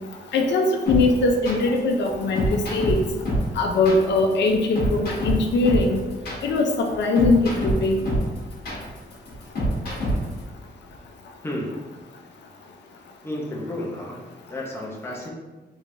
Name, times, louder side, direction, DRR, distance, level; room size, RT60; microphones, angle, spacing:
voice 1, 0.3-2.5 2.7-3.0 3.6-6.0 6.4-8.0, left 3 dB, 85° left, 2 dB, 0.5 m, -21 dB
sound 1, 0.9-10.4, equal, 60° left, 1.3 m, -26 dB
voice 2, 11.4-11.8 13.2-14.2 14.5-15.3, left 1 dB, 15° left, -3 dB, 0.6 m, -31 dB
3.3 x 3.2 x 2.6 m, 1.2 s
wide cardioid pair, 160°, 18 cm